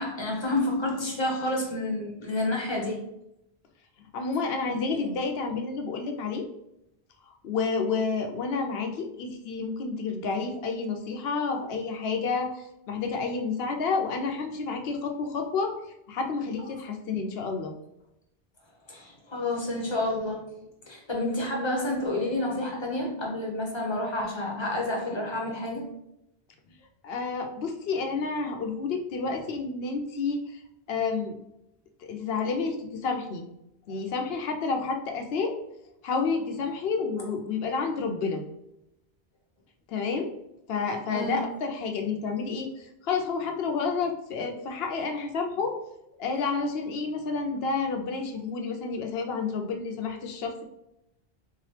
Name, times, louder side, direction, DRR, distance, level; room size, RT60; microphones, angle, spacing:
voice 1, 0.0-3.0 4.7-4.8 18.9-20.5 20.9-25.9 41.1-41.4, left 1 dB, 30° left, -1 dB, 0.9 m, -29 dB
voice 2, 4.1-6.5 7.4-15.8 16.1-17.7 27.0-30.6 30.9-31.4 32.0-33.5 33.9-35.6 36.0-38.4 39.9-40.3 40.7-45.8 46.2-50.6, left 4 dB, 70° left, 4 dB, 0.8 m, -30 dB
3.7 x 2.9 x 3.2 m, 0.83 s
omnidirectional pair, 1.1 m